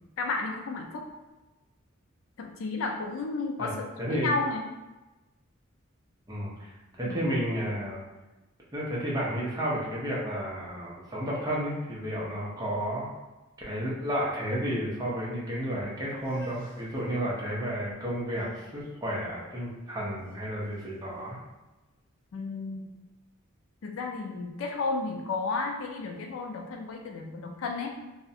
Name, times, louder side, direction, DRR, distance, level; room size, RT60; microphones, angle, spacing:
voice 1, 0.2-1.1 2.4-4.7 7.0-7.2 22.3-22.9 23.8-27.9, left 3 dB, 70° left, 2 dB, 0.4 m, -32 dB
voice 2, 4.0-4.3 6.3-8.0 8.7-13.1 13.7-21.4, equal, 20° right, -6 dB, 0.6 m, -32 dB
sound 1, 16.1-22.1, right 1 dB, 30° left, 0.9 m, -50 dB
2.4 x 2.0 x 2.6 m, 1.1 s
head